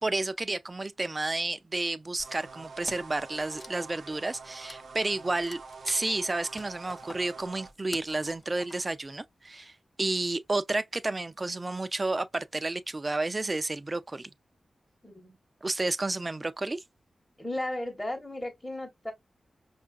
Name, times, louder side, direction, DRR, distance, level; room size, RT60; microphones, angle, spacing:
voice 1, 0.0-9.7 10.0-14.3 15.6-16.8, right 2 dB, 30° right, 0.4 m, -31 dB
sound 1, 2.2-7.7, right 4 dB, 90° right, 0.7 m, -46 dB
Wood, 2.9-3.2 3.5-9.1, left 3 dB, 40° left, 0.3 m, -47 dB
voice 2, 15.0-15.4 17.4-19.1, left 1 dB, 15° left, 1.0 m, -35 dB
5.4 x 2.4 x 2.3 m
wide cardioid pair, 80°, 0 cm